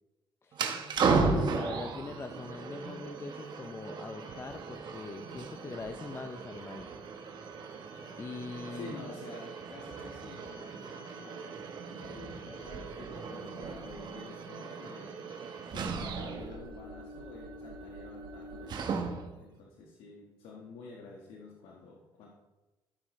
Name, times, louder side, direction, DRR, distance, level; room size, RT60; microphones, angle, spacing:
voice 1, 0.4-6.9 8.2-9.0, left 4 dB, 30° left, 7 dB, 0.6 m, -42 dB
sound 1, 0.5-19.4, right 4 dB, 55° right, 1.3 m, -36 dB
voice 2, 8.7-15.3 15.7-22.3, left 3 dB, 75° left, -1 dB, 1.5 m, -49 dB
14.5 x 6.0 x 3.2 m, 1.1 s
cardioid pair, 95°, 9 cm